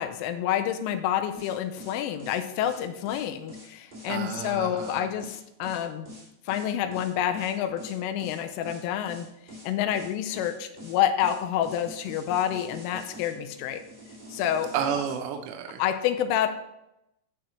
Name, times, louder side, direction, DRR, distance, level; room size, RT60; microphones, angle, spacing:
voice 1, 0.0-6.1 6.5-9.3 9.6-13.8 14.3-14.7 15.8-16.5, left 10 dB, 85° left, 9 dB, 3.1 m, -28 dB
sound 1, 1.3-15.2, left 1 dB, 20° right, 1.3 m, -45 dB
voice 2, 4.1-5.1 14.7-15.8, right 8 dB, 85° right, 4 dB, 2.5 m, -31 dB
13.5 x 4.8 x 3.0 m, 0.85 s
omnidirectional pair, 5.7 m